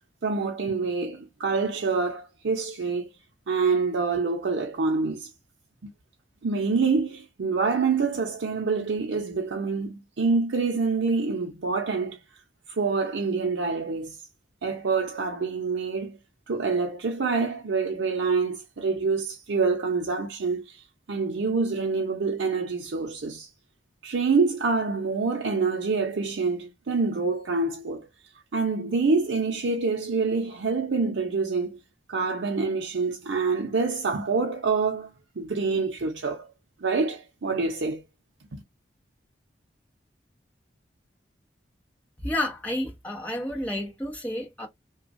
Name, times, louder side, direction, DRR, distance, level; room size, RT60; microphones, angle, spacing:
voice 1, 0.2-3.1 3.5-5.3 5.8-5.9 6.4-12.2 12.7-14.2 14.6-16.2 16.5-23.5 24.0-28.1 28.5-31.8 32.1-35.1 35.4-36.5 36.8-38.0 38.5-38.6, right 4 dB, 85° right, 0.6 m, -26 dB
voice 2, 42.2-44.7, left 1 dB, 10° left, 0.9 m, -30 dB
3.0 x 2.3 x 2.5 m
head